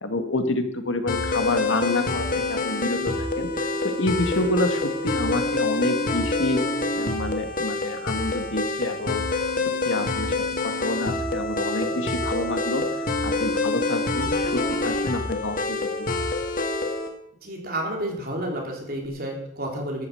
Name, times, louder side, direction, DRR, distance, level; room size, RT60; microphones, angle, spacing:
voice 1, 0.0-6.6 7.0-9.2 9.9-10.4 10.6-12.8 13.2-16.1, left 2 dB, 80° left, 7 dB, 2.0 m, -28 dB
sound 1, 1.1-17.1, left 2 dB, 45° left, 1.7 m, -26 dB
voice 2, 17.4-20.1, right 1 dB, 50° right, 0 dB, 4.2 m, -30 dB
13.5 x 9.9 x 7.8 m, 0.74 s
head